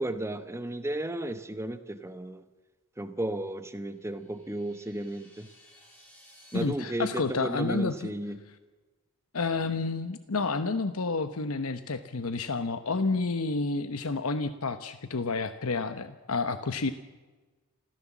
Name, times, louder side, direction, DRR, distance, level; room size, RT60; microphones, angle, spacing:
voice 1, 0.0-2.4 3.0-5.5 6.5-8.4, right 1 dB, 10° right, 10 dB, 1.0 m, -34 dB
sound 1, 3.8-6.6, equal, 10° left, 7.9 m, -57 dB
voice 2, 6.5-8.1 9.3-16.9, left 3 dB, 75° left, 10 dB, 1.0 m, -30 dB
28.0 x 15.0 x 7.3 m, 1.3 s
head